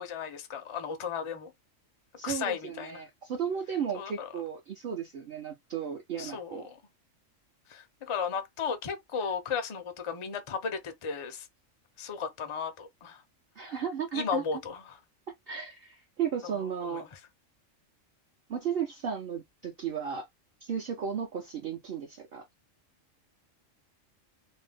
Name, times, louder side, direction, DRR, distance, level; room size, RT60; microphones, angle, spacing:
voice 1, 0.0-1.5 2.2-3.0 3.9-4.3 6.2-6.8 7.7-11.5 12.0-13.2 14.1-15.0 16.4-17.2, left 6 dB, 55° left, 0.3 m, -35 dB
voice 2, 2.2-6.7 13.6-14.4 15.5-17.0 18.5-20.3 20.6-22.4, right 7 dB, 60° right, 0.7 m, -34 dB
2.6 x 2.1 x 3.3 m
omnidirectional pair, 1.4 m